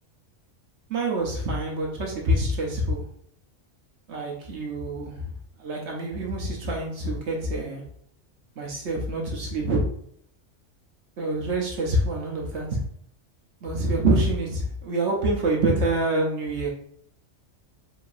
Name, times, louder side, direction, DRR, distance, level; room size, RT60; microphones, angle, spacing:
voice 1, 0.9-3.0 4.1-5.3 5.6-7.8 8.6-9.8 11.2-12.8 13.6-16.7, right 1 dB, 65° right, -1 dB, 1.1 m, -26 dB
4.8 x 3.4 x 2.6 m, 0.67 s
omnidirectional pair, 1.3 m